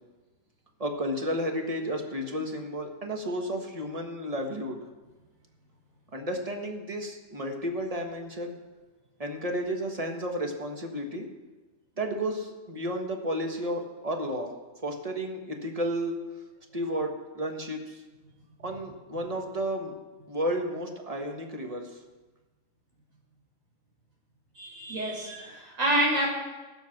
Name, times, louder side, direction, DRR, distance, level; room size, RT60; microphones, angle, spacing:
voice 1, 0.8-4.8 6.1-8.6 9.2-11.3 12.0-14.5 14.8-16.2 16.7-18.0 18.6-19.9 20.3-22.0, equal, 30° right, 3 dB, 1.6 m, -32 dB
voice 2, 24.6-26.3, right 1 dB, 75° right, -4 dB, 5.3 m, -27 dB
16.5 x 7.8 x 6.1 m, 1.2 s
omnidirectional pair, 1.4 m